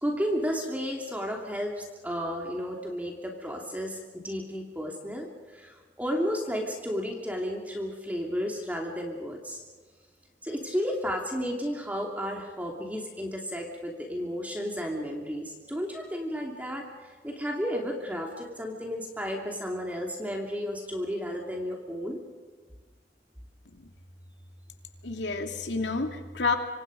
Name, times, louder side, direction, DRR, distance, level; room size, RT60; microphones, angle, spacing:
voice 1, 0.0-9.6 10.4-22.2, equal, 10° right, 0 dB, 2.7 m, -33 dB
voice 2, 25.0-26.6, left 4 dB, 90° left, 4 dB, 2.8 m, -30 dB
26.0 x 26.0 x 5.3 m, 1.4 s
head